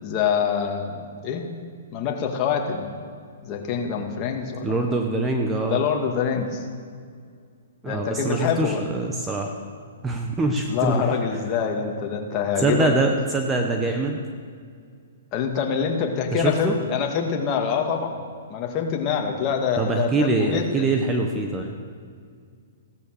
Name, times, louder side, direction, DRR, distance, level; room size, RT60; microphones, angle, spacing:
voice 1, 0.0-1.0 1.2-1.5 1.9-2.9 3.4-4.8 5.6-6.6 7.9-8.8 10.7-12.9 15.3-18.2 18.5-20.9, left 7 dB, 30° left, 2 dB, 2.2 m, -25 dB
voice 2, 4.6-5.8 7.8-9.5 10.0-11.0 12.6-14.2 16.3-16.7 19.8-21.7, right 2 dB, 15° right, 3 dB, 1.2 m, -24 dB
15.5 x 13.5 x 6.8 m, 2.1 s
hypercardioid pair, 140°, 0 cm